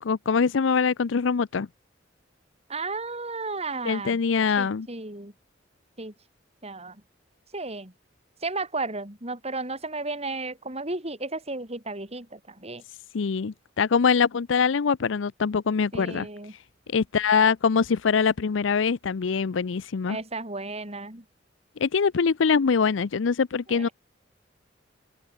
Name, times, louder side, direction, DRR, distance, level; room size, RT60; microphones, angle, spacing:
voice 1, 0.0-1.7 3.9-4.9 13.1-16.3 16.9-20.2 21.8-23.9, left 5 dB, 90° left, 0.5 m, -23 dB
voice 2, 2.7-4.2 4.6-5.3 6.0-6.1 6.6-7.0 7.5-7.9 8.4-12.8 15.9-16.5 20.1-21.2 23.7-23.9, right 3 dB, 35° right, 7.2 m, -34 dB
open air
head